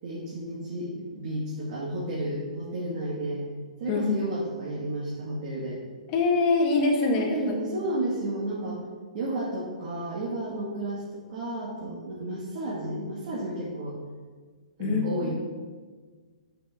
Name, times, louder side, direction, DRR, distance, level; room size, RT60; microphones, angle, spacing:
voice 1, 0.0-3.5 3.8-5.8 7.1-8.8 9.1-14.0 14.8-15.3, right 1 dB, 50° right, -7 dB, 2.0 m, -32 dB
voice 2, 3.9-4.2 6.1-7.6 14.8-15.0, left 3 dB, 35° left, 1 dB, 1.8 m, -24 dB
8.2 x 5.8 x 4.9 m, 1.5 s
hypercardioid pair, 125°, 4 cm